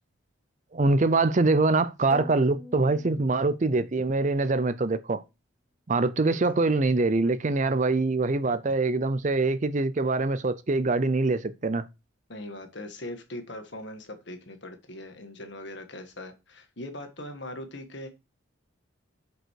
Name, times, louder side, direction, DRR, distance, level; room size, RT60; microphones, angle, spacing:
voice 1, 0.7-5.2 5.9-11.9, right 3 dB, 35° right, 0.5 m, -24 dB
sound 1, 2.1-4.1, left 1 dB, 10° right, 1.0 m, -45 dB
voice 2, 5.9-6.3 12.3-18.1, left 1 dB, 55° left, 1.7 m, -40 dB
7.7 x 5.3 x 4.6 m
head